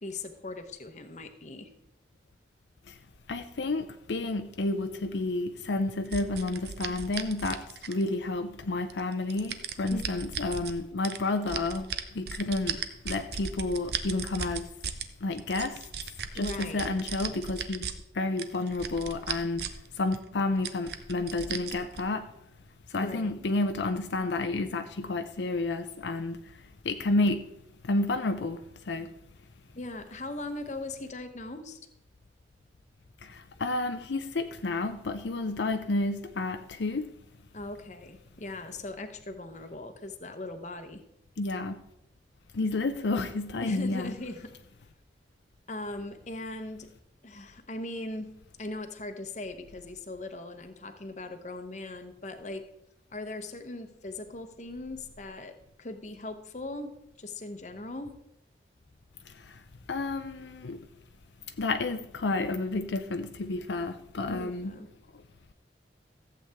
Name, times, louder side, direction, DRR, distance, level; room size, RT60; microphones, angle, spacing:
voice 1, 0.0-1.7 9.9-10.1 16.3-16.9 23.0-23.5 29.7-31.8 37.5-41.0 43.6-44.5 45.7-46.9 47.2-48.3 48.6-52.7 53.1-56.9 57.2-58.1 64.3-64.9, left 2 dB, 40° left, 0.9 m, -39 dB
voice 2, 3.3-14.7 15.2-15.9 16.3-17.9 18.1-19.6 19.9-22.3 22.9-27.5 27.8-28.6 28.9-29.1 33.2-37.1 41.4-41.8 42.5-44.1 59.3-59.6 59.9-60.8 61.6-64.7, left 2 dB, 80° left, 0.6 m, -30 dB
sound 1, 6.1-8.2 8.9-10.7 11.0-15.0 15.4-17.9 18.4-19.9 20.1-20.2 20.6-22.0, right 7 dB, 60° right, 0.7 m, -36 dB
14.5 x 8.0 x 3.5 m
head